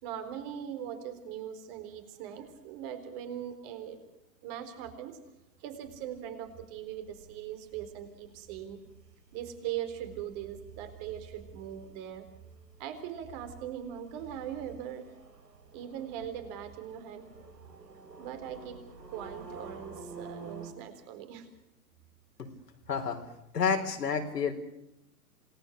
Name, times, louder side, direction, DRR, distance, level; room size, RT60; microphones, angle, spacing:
voice 1, 0.0-4.0 4.4-5.2 5.6-8.8 9.3-12.3 12.8-15.1 15.7-17.3 18.2-18.8 19.1-21.5, right 10 dB, 40° right, 9 dB, 4.0 m, -40 dB
sound 1, 5.9-20.7, right 4 dB, 85° right, 4.9 m, -51 dB
voice 2, 22.9-23.2 23.5-24.5, left 6 dB, 85° left, 4 dB, 4.4 m, -29 dB
27.5 x 19.0 x 6.6 m, 0.87 s
hypercardioid pair, 125°, 47 cm